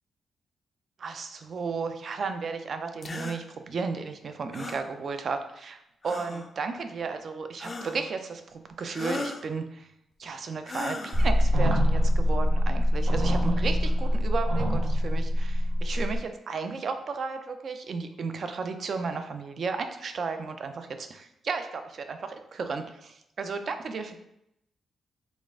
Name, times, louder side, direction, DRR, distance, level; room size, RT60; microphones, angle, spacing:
voice 1, 1.0-9.9 10.2-24.2, right 4 dB, 50° right, 7 dB, 0.4 m, -34 dB
sound 1, 3.0-3.4 4.5-4.9 6.0-6.5 7.6-8.1 8.9-9.5 10.6-11.3, left 3 dB, 30° left, 0.4 m, -36 dB
sound 2, 11.1-16.2, equal, 80° right, 0.7 m, -24 dB
4.0 x 2.4 x 3.6 m, 0.81 s
cardioid pair, 135°, 0 cm